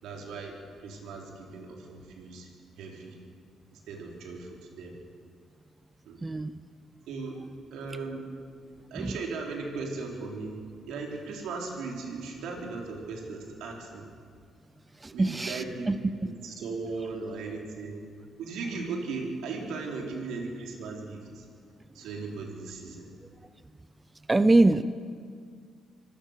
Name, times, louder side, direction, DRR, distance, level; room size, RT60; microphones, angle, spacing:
voice 1, 0.0-2.5 2.8-3.2 3.7-4.9 6.1-6.2 7.1-7.4 7.7-8.3 8.9-10.6 10.9-14.1 15.1-18.0 18.4-21.5 21.9-23.1, right 4 dB, 85° right, 0 dB, 3.9 m, -37 dB
voice 2, 6.2-6.5 9.0-9.2 15.0-16.0 24.3-24.8, right 2 dB, 20° right, 13 dB, 0.6 m, -23 dB
24.5 x 17.0 x 6.7 m, 2.1 s
cardioid pair, 90°, 0 cm